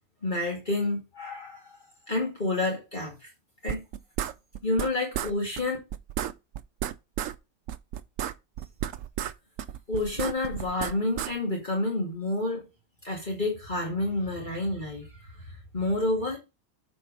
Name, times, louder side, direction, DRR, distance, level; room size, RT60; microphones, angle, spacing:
voice 1, 0.2-1.8 2.1-3.3 3.6-3.8 4.6-5.8 9.9-12.6 13.0-15.1 15.7-16.4, left 2 dB, 35° left, 2.4 m, -29 dB
sound 1, 3.7-4.9 5.1-5.3 5.6-5.7 5.9-7.4 7.7-9.3 9.6-11.3, right 11 dB, 75° right, 1.0 m, -32 dB
8.1 x 4.4 x 5.2 m
omnidirectional pair, 1.4 m